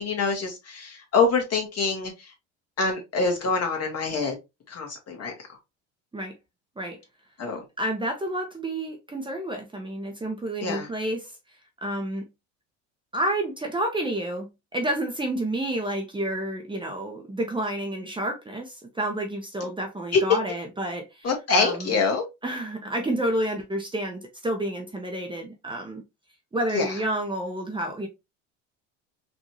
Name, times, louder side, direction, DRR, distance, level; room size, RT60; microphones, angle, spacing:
voice 1, 0.0-2.3 2.8-4.3 4.7-5.6 7.4-7.6 10.6-10.9 20.1-20.2 21.2-22.3 26.7-27.0, left 4 dB, 45° left, 1.8 m, -25 dB
voice 2, 7.8-11.3 11.8-12.3 13.1-21.3 21.5-21.9 22.4-26.0 26.5-28.1, right 1 dB, 15° right, 0.9 m, -29 dB
3.9 x 2.7 x 3.0 m
supercardioid pair, 85°, 36 cm